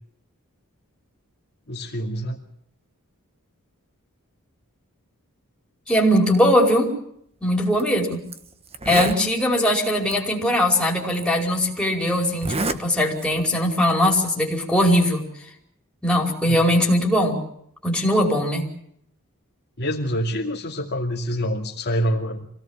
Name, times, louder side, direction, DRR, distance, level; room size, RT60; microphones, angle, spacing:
voice 1, 1.7-2.4 16.5-16.6 19.8-22.5, equal, 50° left, -1 dB, 2.6 m, -26 dB
voice 2, 5.9-6.9 7.4-8.3 8.8-15.3 16.0-17.4 17.8-18.7, equal, 5° left, -1 dB, 5.0 m, -20 dB
Zipper (clothing), 7.7-7.8 8.3-8.4 8.7-9.2 10.1-10.2 11.1-11.2 12.3-12.8 13.2-13.5, right 2 dB, 25° right, 1.3 m, -27 dB
26.0 x 18.0 x 7.4 m, 0.72 s
head